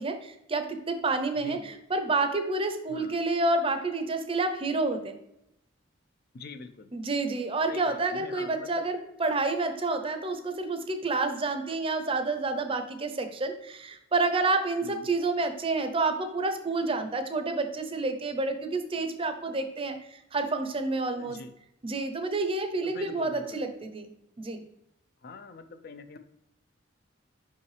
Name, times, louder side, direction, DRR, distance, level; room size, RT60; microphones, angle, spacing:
voice 1, 0.0-5.2 6.9-21.4 21.8-24.1 24.4-24.6, right 3 dB, 25° right, 7 dB, 0.6 m, -29 dB
voice 2, 6.3-6.9 7.7-8.8 14.8-15.0 21.2-21.5 22.8-23.6 25.2-26.2, left 4 dB, 50° left, 9 dB, 0.4 m, -44 dB
5.5 x 5.3 x 3.2 m, 0.84 s
head